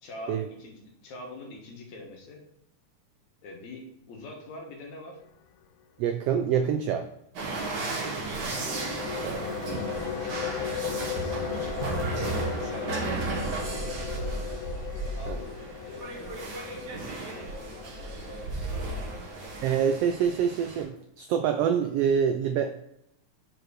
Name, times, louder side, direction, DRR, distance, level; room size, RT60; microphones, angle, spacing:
voice 1, 0.0-2.4 3.4-5.2 7.5-8.1 12.2-14.3 15.0-15.6 15.9-19.6, left 1 dB, 70° left, 1 dB, 2.6 m, -44 dB
voice 2, 6.0-7.0 9.2-9.4 15.3-15.4 19.6-22.7, right 8 dB, 85° right, 6 dB, 1.4 m, -26 dB
sound 1, 7.3-20.8, right 3 dB, 45° right, 1.6 m, -34 dB
sound 2, 8.3-19.7, left 10 dB, 90° left, 2.1 m, -37 dB
6.2 x 4.8 x 6.4 m, 0.76 s
omnidirectional pair, 3.4 m